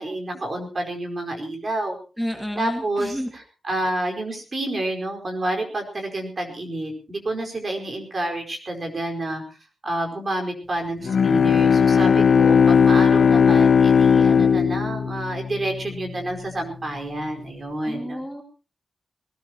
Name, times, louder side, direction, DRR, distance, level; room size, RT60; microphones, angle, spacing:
voice 1, 0.0-2.0 2.6-9.6 9.8-18.2, right 1 dB, 35° right, 3 dB, 4.8 m, -29 dB
voice 2, 2.2-3.3 17.8-18.4, equal, ahead, 2 dB, 2.2 m, -30 dB
Bowed string instrument, 11.0-16.1, left 6 dB, 65° left, 0.8 m, -17 dB
20.5 x 19.0 x 3.0 m, 0.34 s
wide cardioid pair, 150°, 0 cm